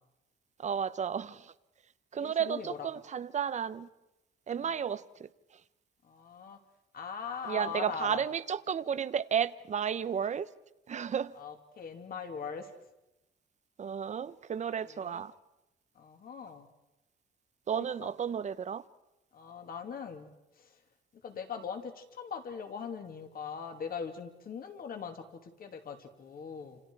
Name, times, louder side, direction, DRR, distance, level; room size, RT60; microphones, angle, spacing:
voice 1, 0.6-1.5 2.1-3.9 4.5-5.3 7.4-10.5 10.9-11.4 13.8-15.3 17.7-18.8, right 8 dB, 35° right, 0.8 m, -33 dB
voice 2, 2.1-2.9 4.6-4.7 6.0-6.6 6.9-8.2 11.4-12.7 14.8-15.2 16.0-16.7 17.7-18.1 19.3-20.3 20.6-20.7 21.2-26.8, left 6 dB, 45° left, 2.6 m, -41 dB
29.5 x 27.0 x 4.8 m
cardioid pair, 160°, 20 cm